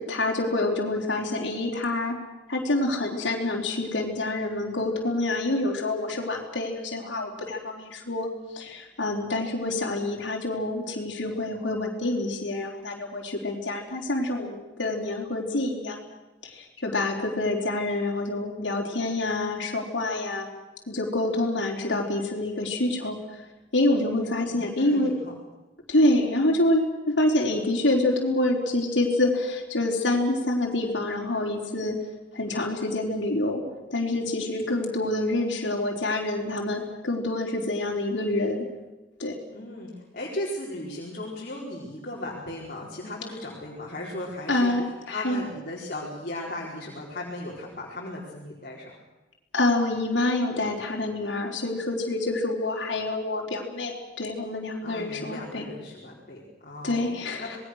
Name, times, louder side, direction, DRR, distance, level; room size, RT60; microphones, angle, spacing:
voice 1, 0.1-2.1 2.5-8.3 8.5-16.0 16.4-20.5 20.9-23.2 23.7-25.1 25.9-32.0 32.3-33.6 33.9-38.6 39.2-39.3 44.5-45.4 49.5-55.6 56.8-57.5, left 2 dB, 75° left, -1 dB, 4.0 m, -27 dB
voice 2, 24.1-25.3 39.5-48.9 54.8-57.1 57.4-57.6, left 1 dB, 50° left, -4 dB, 4.5 m, -37 dB
27.0 x 20.5 x 6.5 m, 1.1 s
head